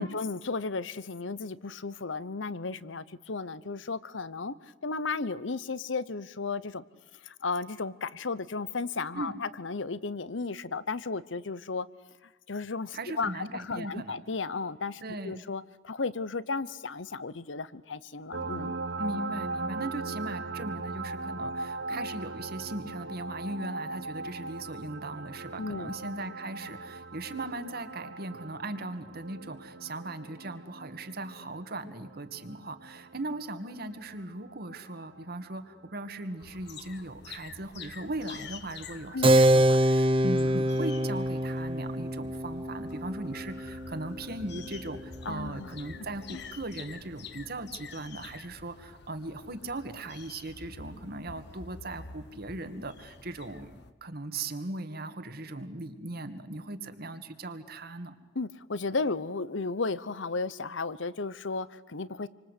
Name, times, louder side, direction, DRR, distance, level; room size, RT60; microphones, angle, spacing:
voice 1, 0.0-6.8 7.2-11.9 12.5-18.7 25.6-25.9 39.1-39.4 45.2-45.7 46.3-46.4 58.3-62.3, left 4 dB, 85° left, 17 dB, 1.0 m, -34 dB
voice 2, 12.9-14.2 15.0-15.4 19.0-58.2, right 2 dB, 55° right, 9 dB, 2.1 m, -38 dB
sound 1, 18.3-35.5 37.1-37.2, right 3 dB, 80° right, 1.3 m, -39 dB
sound 2, 36.4-53.9, left 5 dB, 65° left, 1.5 m, -48 dB
Keyboard (musical), 39.2-45.3, right 1 dB, 30° right, 0.8 m, -26 dB
28.0 x 25.0 x 8.3 m, 1.1 s
head